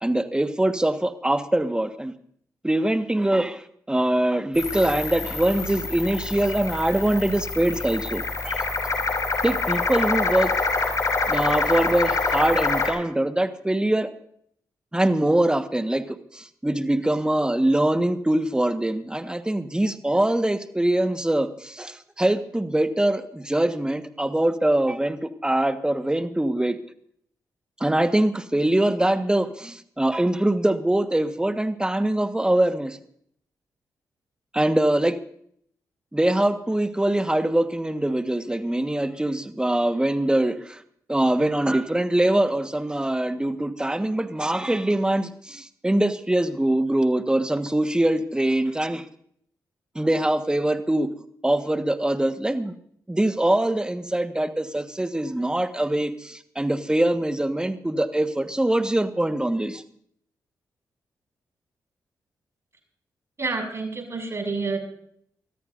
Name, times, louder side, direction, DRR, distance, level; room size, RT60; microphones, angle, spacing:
voice 1, 0.0-2.1 2.6-8.6 9.4-10.5 11.3-14.1 14.9-26.8 27.8-33.0 34.5-35.2 36.1-40.8 41.1-49.0 49.9-51.1 51.4-52.8 53.1-59.8, right 1 dB, 10° right, 9 dB, 1.4 m, -23 dB
sound 1, 4.5-12.9, left 3 dB, 50° left, 5.4 m, -26 dB
voice 2, 63.4-64.8, right 3 dB, 40° right, 4 dB, 6.1 m, -28 dB
23.0 x 14.0 x 2.6 m, 0.65 s
cardioid pair, 55°, 7 cm